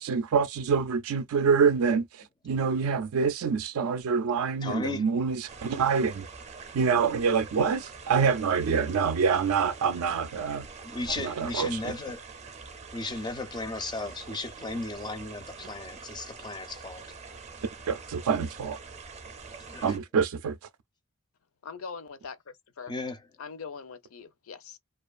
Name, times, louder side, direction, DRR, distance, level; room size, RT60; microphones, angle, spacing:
voice 1, 0.0-6.2 6.7-10.7 11.2-11.7 17.9-18.8 19.8-20.5, right 6 dB, 80° right, 0.4 m, -26 dB
voice 2, 4.6-5.1 10.8-12.2 12.9-17.1 19.5-20.0 22.9-23.2, left 3 dB, 20° left, 0.4 m, -35 dB
sound 1, 5.5-20.0, right 4 dB, 30° right, 0.5 m, -45 dB
voice 3, 21.6-22.9 23.4-24.8, left 5 dB, 70° left, 0.5 m, -42 dB
2.5 x 2.3 x 2.3 m
head